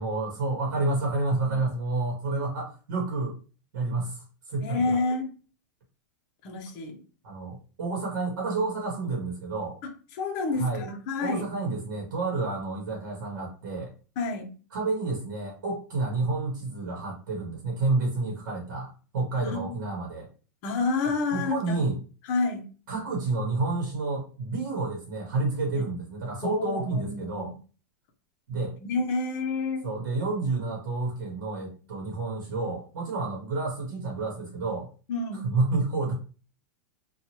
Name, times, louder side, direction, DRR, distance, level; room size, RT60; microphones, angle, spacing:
voice 1, 0.0-3.4 3.7-4.8 7.2-9.8 10.5-10.9 11.2-13.9 14.7-20.3 21.3-22.0 22.9-27.5 28.5-28.7 29.8-34.9 35.4-36.2, right 3 dB, 85° right, -1 dB, 1.0 m, -29 dB
voice 2, 4.6-5.3 6.4-7.0 9.8-11.4 14.2-14.5 19.4-19.8 20.6-21.8 22.2-22.6 25.7-25.9 26.4-27.5 28.8-29.9 35.1-35.5, left 3 dB, 30° left, 3 dB, 0.7 m, -29 dB
2.9 x 2.3 x 2.9 m, 0.37 s
supercardioid pair, 175°, 10 cm